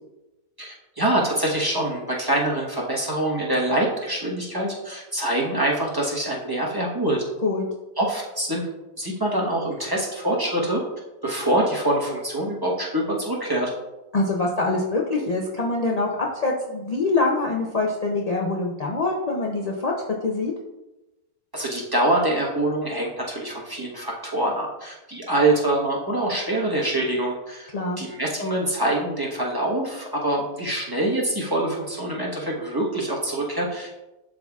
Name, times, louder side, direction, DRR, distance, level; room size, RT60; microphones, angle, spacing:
voice 1, 0.6-7.2 8.0-8.7 9.0-10.8 11.2-13.7 21.5-27.7 28.0-33.9, right 1 dB, 15° right, -3 dB, 1.0 m, -25 dB
voice 2, 14.1-16.1 16.4-19.9 20.2-20.5 27.7-28.0, left 3 dB, 60° left, -2 dB, 0.4 m, -24 dB
11.0 x 3.8 x 2.3 m, 1.0 s
omnidirectional pair, 1.6 m